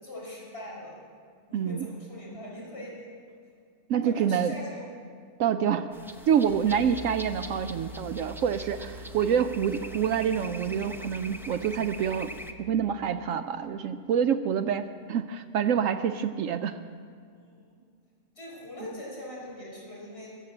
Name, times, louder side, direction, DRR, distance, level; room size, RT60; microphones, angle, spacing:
voice 1, 0.0-1.0 1.5-3.1 4.0-4.9 6.6-6.9 17.3-17.8 18.3-20.4, left 1 dB, 45° left, -5 dB, 5.0 m, -42 dB
voice 2, 1.5-1.9 3.9-4.6 5.4-5.9 6.3-12.3 12.6-16.8, right 8 dB, 70° right, 9 dB, 0.9 m, -27 dB
sound 1, 5.9-12.5, equal, 5° right, 0.5 m, -43 dB
Piano, 6.5-12.8, right 1 dB, 65° left, 3.0 m, -45 dB
21.5 x 7.3 x 7.7 m, 2.2 s
omnidirectional pair, 1.5 m